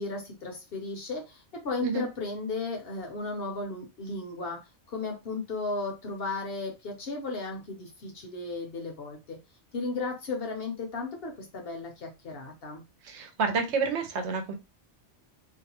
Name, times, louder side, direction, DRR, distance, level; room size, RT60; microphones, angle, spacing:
voice 1, 0.0-4.6 4.9-9.4 9.7-12.8, left 3 dB, 60° left, 2 dB, 0.9 m, -35 dB
voice 2, 13.0-14.5, right 4 dB, 70° right, 5 dB, 0.9 m, -29 dB
2.6 x 2.1 x 2.8 m, 0.25 s
omnidirectional pair, 1.3 m